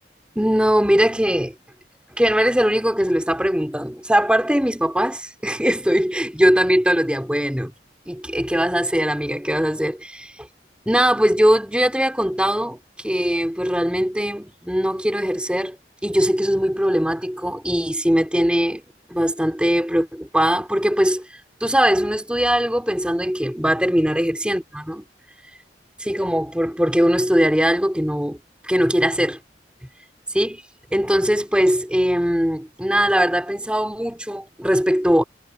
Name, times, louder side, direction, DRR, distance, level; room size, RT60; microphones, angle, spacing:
voice 1, 0.3-1.5 2.1-7.7 8.1-10.4 10.8-15.8 16.0-18.8 19.1-25.0 26.0-28.4 28.6-29.4 30.3-30.6 30.9-35.2, equal, 5° right, 3.0 m, -20 dB
head